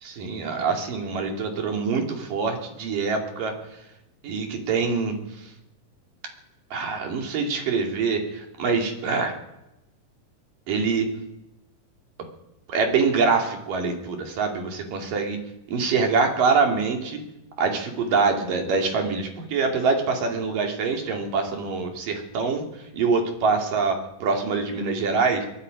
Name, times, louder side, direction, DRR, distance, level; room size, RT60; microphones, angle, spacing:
voice 1, 0.0-3.5 4.2-5.1 6.7-9.3 10.7-11.1 12.7-15.4 15.7-17.2 17.6-22.6 22.9-25.5, right 4 dB, 70° right, 2 dB, 4.4 m, -24 dB
23.5 x 21.5 x 5.3 m, 0.93 s
omnidirectional pair, 4.1 m